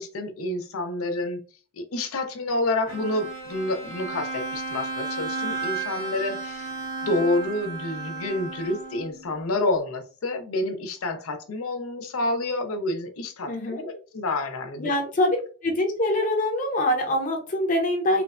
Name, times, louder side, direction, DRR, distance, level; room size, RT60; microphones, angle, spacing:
voice 1, 0.0-1.4 1.8-6.7 7.0-13.5 13.8-14.9, left 2 dB, 85° left, 0.6 m, -28 dB
Bowed string instrument, 2.9-9.3, right 3 dB, 85° right, 1.5 m, -33 dB
voice 2, 13.5-13.8 14.8-15.4 15.6-18.2, left 1 dB, 40° left, 0.8 m, -24 dB
3.2 x 2.0 x 2.4 m
head